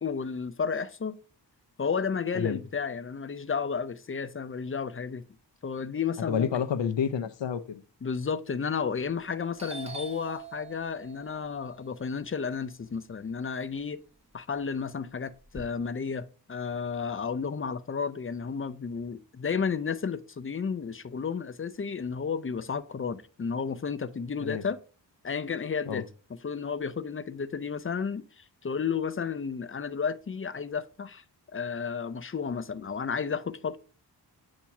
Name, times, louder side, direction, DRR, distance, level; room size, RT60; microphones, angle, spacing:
voice 1, 0.0-1.2 1.8-5.2 5.6-6.5 8.0-14.0 14.3-24.8 25.2-26.1 26.4-31.2 31.5-33.8, left 6 dB, 30° left, 0.6 m, -32 dB
voice 2, 6.3-7.8 24.4-24.6 25.9-26.0, left 7 dB, 90° left, 0.7 m, -29 dB
Doorbell, 9.3-9.4 9.6-13.7 14.1-15.6, right 5 dB, 15° right, 1.1 m, -45 dB
8.5 x 2.9 x 5.8 m
wide cardioid pair, 75°, 43 cm